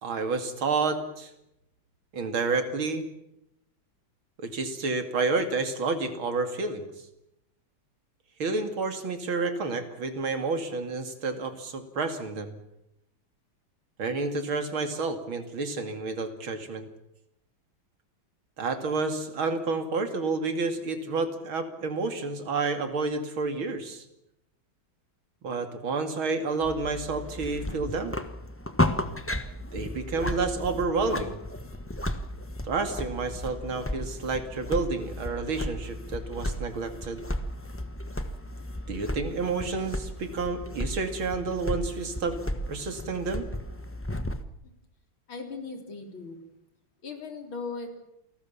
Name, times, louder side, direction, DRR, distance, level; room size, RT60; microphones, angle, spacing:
voice 1, 0.0-1.3 2.1-3.1 4.4-6.9 8.4-12.5 14.0-16.9 18.6-24.0 25.4-28.2 29.7-31.4 32.6-37.2 38.9-42.4 42.7-43.5, right 3 dB, 80° right, 7 dB, 3.2 m, -30 dB
sound 1, 26.6-44.4, left 1 dB, 10° left, 0.8 m, -34 dB
voice 2, 45.3-46.4 47.0-47.9, left 4 dB, 75° left, 4 dB, 4.4 m, -38 dB
28.5 x 19.0 x 7.2 m, 0.84 s
omnidirectional pair, 2.2 m